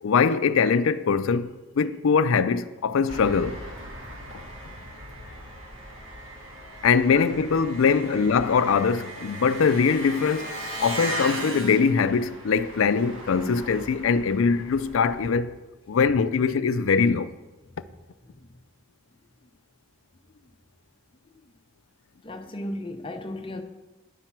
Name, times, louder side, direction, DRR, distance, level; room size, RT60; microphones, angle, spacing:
voice 1, 0.0-3.6 6.8-15.5 15.9-17.3, left 5 dB, 70° left, 0.4 m, -22 dB
Engine, 3.1-15.3, right 1 dB, 70° right, 1.5 m, -38 dB
voice 2, 7.1-7.5 8.1-8.2 18.4-18.5 22.2-23.6, left 1 dB, 25° left, 0.6 m, -35 dB
10.0 x 4.5 x 5.9 m
head